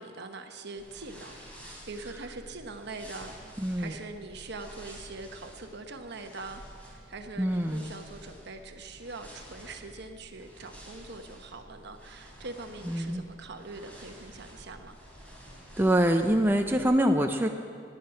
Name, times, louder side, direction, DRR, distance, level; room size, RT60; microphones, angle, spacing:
voice 1, 0.0-1.4 1.9-3.3 3.8-15.0, right 3 dB, 55° right, 6 dB, 1.1 m, -43 dB
sound 1, 0.8-16.8, equal, 5° left, 3.3 m, -50 dB
voice 2, 3.6-4.0 7.4-7.8 12.9-13.2 15.8-17.5, right 1 dB, 10° right, 3 dB, 0.5 m, -25 dB
19.5 x 10.0 x 5.7 m, 2.4 s
head